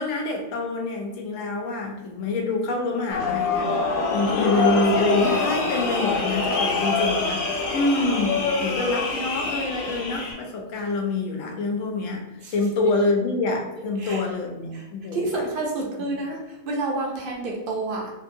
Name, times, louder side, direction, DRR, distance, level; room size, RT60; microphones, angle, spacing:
voice 1, 0.0-3.7 4.1-12.2 12.5-15.5, left 3 dB, 75° left, 2 dB, 1.0 m, -26 dB
sound 1, 3.1-10.3, left 3 dB, 55° left, 0.6 m, -25 dB
voice 2, 15.1-16.4 16.7-18.1, right 2 dB, 55° right, 0 dB, 0.6 m, -28 dB
3.2 x 2.6 x 2.6 m, 0.99 s
omnidirectional pair, 1.4 m